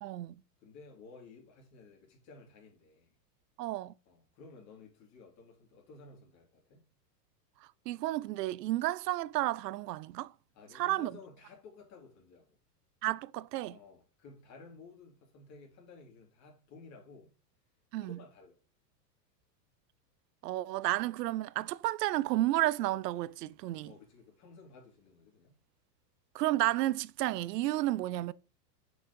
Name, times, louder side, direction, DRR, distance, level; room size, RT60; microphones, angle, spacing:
voice 1, 0.0-0.4 3.6-3.9 7.9-10.3 10.7-11.1 13.0-13.8 17.9-18.2 20.4-23.9 26.3-28.3, right 16 dB, 75° right, 0.6 m, -32 dB
voice 2, 0.6-3.2 4.0-6.8 10.5-12.6 13.7-17.3 18.0-18.6 23.8-25.5, left 4 dB, 35° left, 3.1 m, -54 dB
6.4 x 5.0 x 5.1 m
supercardioid pair, 145°, 49 cm